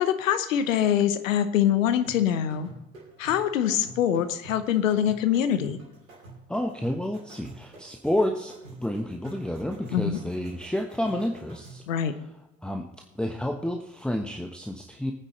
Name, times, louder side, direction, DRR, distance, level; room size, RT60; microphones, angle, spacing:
voice 1, 0.0-2.7 3.2-5.8 9.9-10.2 11.9-12.1, left 9 dB, 80° left, 11 dB, 1.0 m, -24 dB
sound 1, 2.0-12.0, right 2 dB, 85° right, 2.7 m, -48 dB
voice 2, 6.5-11.8 12.6-12.9 13.2-15.1, left 1 dB, ahead, 3 dB, 1.2 m, -30 dB
19.5 x 9.7 x 3.2 m, 0.95 s
figure-of-eight pair, 50°, 39 cm